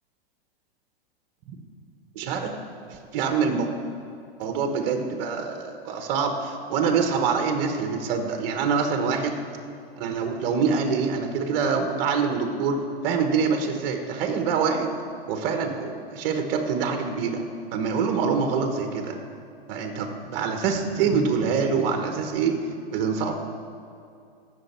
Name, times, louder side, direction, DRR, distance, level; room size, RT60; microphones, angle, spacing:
voice 1, 2.1-2.5 2.9-3.7 4.4-9.4 10.0-14.9 15.3-17.4 17.7-19.2 19.7-22.6 22.9-23.4, right 5 dB, 45° right, 5 dB, 1.2 m, -25 dB
16.5 x 6.5 x 4.4 m, 2.4 s
hypercardioid pair, 145°, 30 cm